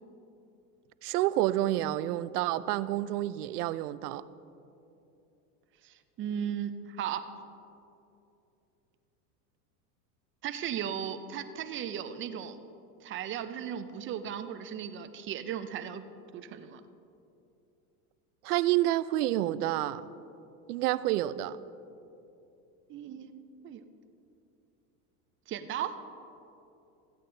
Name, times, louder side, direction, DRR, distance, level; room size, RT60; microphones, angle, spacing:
voice 1, 1.0-4.2 18.4-20.1 20.7-21.6, right 14 dB, 85° right, 16 dB, 0.6 m, -29 dB
voice 2, 5.8-7.2 10.4-12.6 13.0-16.0 16.3-16.8 22.9-23.4 23.6-23.8 25.5-25.9, right 9 dB, 25° right, 10 dB, 0.5 m, -36 dB
14.5 x 8.9 x 3.8 m, 2.8 s
supercardioid pair, 120°, 45 cm